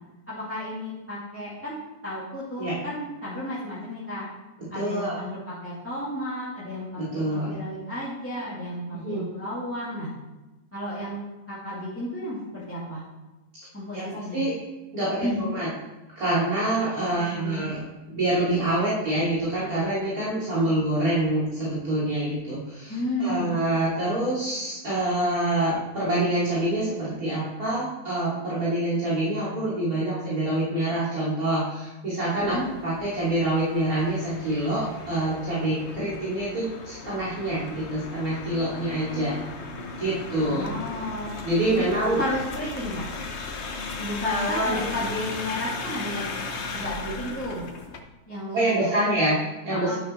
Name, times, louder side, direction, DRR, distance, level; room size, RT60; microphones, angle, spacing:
voice 1, 0.3-4.3 4.7-10.1 10.7-11.2 11.5-13.0 13.7-14.4 15.2-15.4 17.1-17.6 22.9-23.5 32.4-32.7 40.5-41.4 42.0-43.1 44.0-46.4 46.7-47.6 48.3-49.0 49.7-50.0, left 1 dB, 10° left, -9 dB, 2.3 m, -32 dB
voice 2, 4.7-5.2 7.0-7.6 8.9-9.3 13.9-14.5 14.9-15.7 16.2-39.3 40.0-40.7 41.4-42.2 44.2-45.0 48.5-50.0, right 1 dB, 60° right, -10 dB, 3.5 m, -26 dB
sound 1, 32.4-48.0, left 4 dB, 50° left, 1.1 m, -37 dB
11.0 x 6.5 x 4.4 m, 1.1 s
omnidirectional pair, 1.7 m